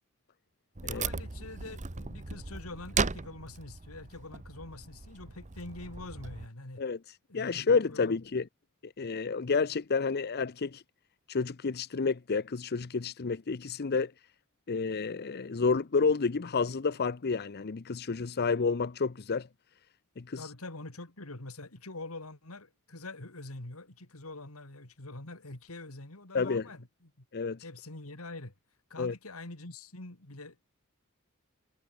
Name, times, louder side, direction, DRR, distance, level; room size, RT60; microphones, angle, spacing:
Wood, 0.8-6.5, right 4 dB, 35° right, 1.1 m, -37 dB
voice 1, 0.9-6.8 7.3-8.2 20.4-27.2 27.6-28.5 28.9-30.6, left 2 dB, 85° left, 3.0 m, -45 dB
voice 2, 7.3-8.5 8.8-10.8 11.3-14.1 14.7-19.5 20.2-20.5 26.3-26.6 27.3-27.6 29.0-29.1, left 4 dB, 50° left, 0.6 m, -30 dB
head